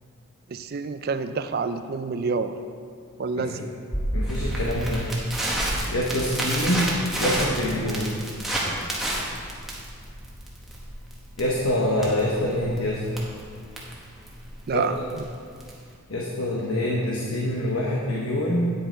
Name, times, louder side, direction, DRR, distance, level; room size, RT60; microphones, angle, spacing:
voice 1, 0.5-2.6 3.2-3.7 14.7-15.2, right 4 dB, 45° right, 10 dB, 0.4 m, -28 dB
Crackle, 3.9-15.9, right 1 dB, ahead, 1.1 m, -30 dB
voice 2, 4.1-5.1 5.9-6.9 7.2-8.2 11.4-13.0 14.7-14.9 16.1-18.7, left 1 dB, 70° left, -3 dB, 1.0 m, -25 dB
9.2 x 6.7 x 4.5 m, 2.2 s
head